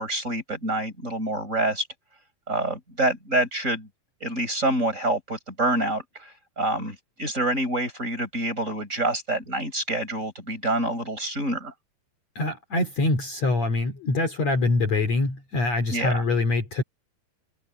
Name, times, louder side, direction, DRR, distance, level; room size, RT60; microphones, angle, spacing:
voice 1, 0.0-1.9 2.5-3.9 4.2-11.7 15.9-16.2, right 1 dB, 20° right, 6.4 m, -27 dB
voice 2, 12.3-16.8, left 2 dB, 50° left, 3.4 m, -24 dB
omnidirectional pair, 4.3 m